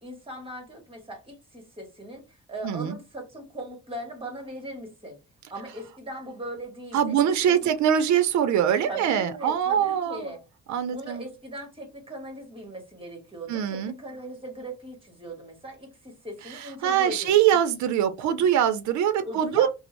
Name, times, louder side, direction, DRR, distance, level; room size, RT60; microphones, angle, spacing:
voice 1, 0.0-5.2 5.5-7.7 8.9-10.4 10.9-17.4 19.2-19.7, right 1 dB, 20° right, 1.3 m, -39 dB
voice 2, 2.6-3.0 6.9-10.2 10.7-11.2 13.5-13.9 16.8-19.7, right 9 dB, 70° right, 0.5 m, -23 dB
2.5 x 2.0 x 3.0 m
cardioid pair, 90°, 30 cm